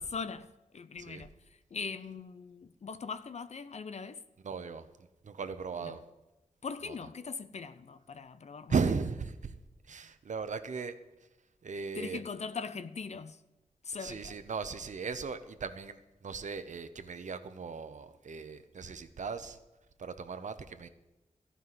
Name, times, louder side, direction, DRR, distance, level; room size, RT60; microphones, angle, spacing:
voice 1, 0.1-0.5 0.7-1.3 1.7-4.2 5.8-6.0 6.6-8.8 11.9-13.4 13.8-14.3, left 5 dB, 60° left, 0.6 m, -40 dB
voice 2, 4.4-4.9 5.2-6.0 6.8-6.9 8.7-9.6 9.8-11.0 11.6-12.2 14.0-19.6 20.0-20.9, right 5 dB, 75° right, 0.8 m, -37 dB
14.5 x 5.6 x 9.5 m
wide cardioid pair, 120°, 13 cm